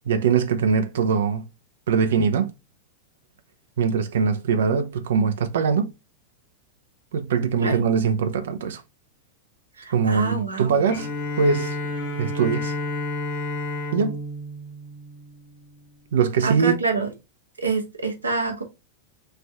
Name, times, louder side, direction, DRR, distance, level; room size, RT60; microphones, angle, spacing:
voice 1, 0.1-1.5 1.9-2.5 3.8-5.9 7.1-8.8 9.9-11.1 11.4-11.8 12.2-12.8 13.9-14.2 16.1-16.7, right 6 dB, 60° right, 0.4 m, -22 dB
voice 2, 9.8-10.7 16.4-17.1 17.6-18.6, right 4 dB, 80° right, 0.8 m, -26 dB
Bowed string instrument, 10.9-15.8, left 2 dB, 55° left, 1.3 m, -31 dB
3.2 x 2.5 x 3.4 m
figure-of-eight pair, 90°, 0 cm